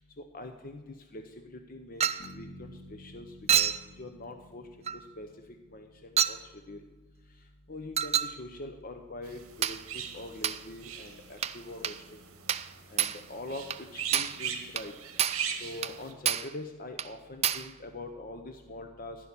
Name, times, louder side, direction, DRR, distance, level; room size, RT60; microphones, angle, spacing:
voice 1, 0.3-4.9 5.2-5.3 5.7-6.8 7.7-12.2 12.9-13.6 13.9-14.9 15.6-19.2, left 2 dB, 40° left, 5 dB, 0.8 m, -43 dB
Chink clink, 2.0-2.3 3.5-3.9 4.9-5.0 6.2-6.4 8.0-8.4 9.6-9.8 10.4-10.6 11.4-11.6 11.8-12.0 12.5-12.7 13.0-13.2 13.7-13.8 14.1-14.4 14.8-14.9 15.2-15.5 15.8-16.0 16.3-16.5 17.0-17.1 17.4-17.7, right 10 dB, 30° right, 0.3 m, -28 dB
Bass guitar, 2.2-6.2, left 1 dB, 75° left, 1.8 m, -52 dB
sound 1, 9.2-16.1, right 8 dB, 70° right, 1.7 m, -40 dB
15.0 x 5.5 x 8.6 m, 1.2 s
head